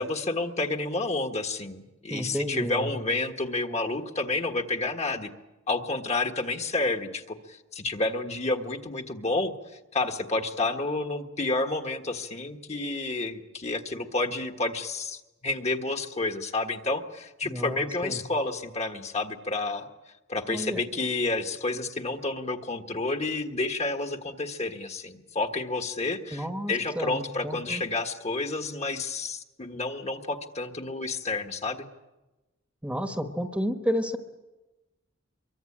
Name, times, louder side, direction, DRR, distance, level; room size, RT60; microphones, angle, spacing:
voice 1, 0.0-5.3 5.7-9.5 9.9-19.9 20.3-31.8, left 2 dB, 35° left, 6 dB, 1.5 m, -30 dB
voice 2, 2.1-2.9 17.4-18.2 20.5-20.8 26.3-27.8 32.8-34.2, equal, 5° right, 6 dB, 1.3 m, -31 dB
25.0 x 23.5 x 8.7 m, 1.1 s
head